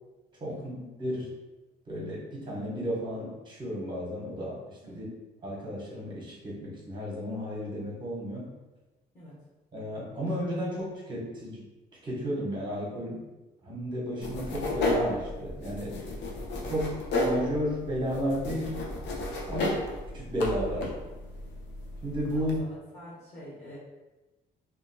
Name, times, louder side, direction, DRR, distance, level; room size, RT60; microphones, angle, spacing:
voice 1, 0.5-0.8 4.8-5.1 9.1-9.3 19.5-19.8 22.3-22.6 22.9-23.8, left 1 dB, 20° left, -9 dB, 0.9 m, -46 dB
voice 2, 1.0-1.3 1.9-4.6 4.9-5.1 5.4-8.4 9.7-11.6 12.0-13.2 13.6-15.9 16.6-18.8 19.5-19.7 20.1-20.9 22.0-22.5, equal, 25° right, -4 dB, 1.0 m, -33 dB
sound 1, 14.2-22.6, left 2 dB, 80° left, 0.6 m, -33 dB
2.6 x 2.4 x 2.7 m, 1.1 s
cardioid pair, 125°, 18 cm